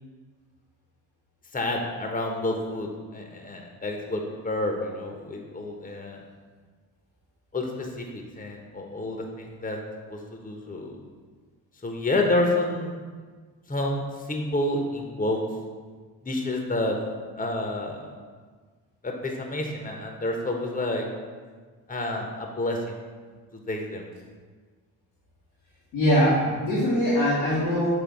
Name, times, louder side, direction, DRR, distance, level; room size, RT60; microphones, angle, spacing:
voice 1, 1.5-6.2 7.5-9.8 10.1-11.0 11.8-12.9 13.7-15.4 16.2-17.0 17.3-18.1 19.0-21.1 21.9-23.0 23.7-24.1, left 2 dB, 20° left, 2 dB, 1.0 m, -29 dB
voice 2, 25.9-27.9, equal, 85° left, -8 dB, 1.5 m, -22 dB
7.1 x 3.3 x 4.7 m, 1.5 s
supercardioid pair, 55°, 40 cm